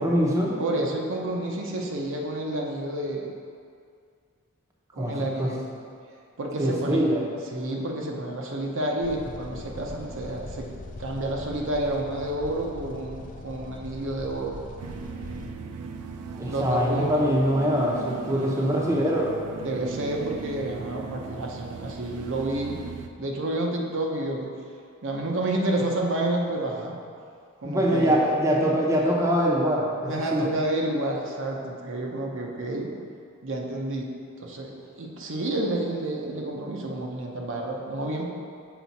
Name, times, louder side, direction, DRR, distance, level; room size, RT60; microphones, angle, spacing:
voice 1, 0.0-0.6 5.0-5.5 6.6-7.3 16.4-19.3 27.6-30.4, equal, 15° right, -3 dB, 0.7 m, -23 dB
voice 2, 0.6-3.3 5.0-5.6 6.4-7.1 7.5-10.7 11.0-14.6 16.5-17.3 18.3-18.9 19.6-22.8 23.2-24.5 25.0-26.9 27.6-28.1 30.1-32.9 33.4-34.1 34.4-38.2, right 1 dB, 60° right, 0 dB, 0.7 m, -29 dB
sound 1, 9.0-15.5, left 2 dB, 35° left, 0.5 m, -41 dB
sound 2, 14.8-23.1, right 5 dB, 90° right, 0.4 m, -39 dB
6.0 x 4.8 x 4.1 m, 2.3 s
head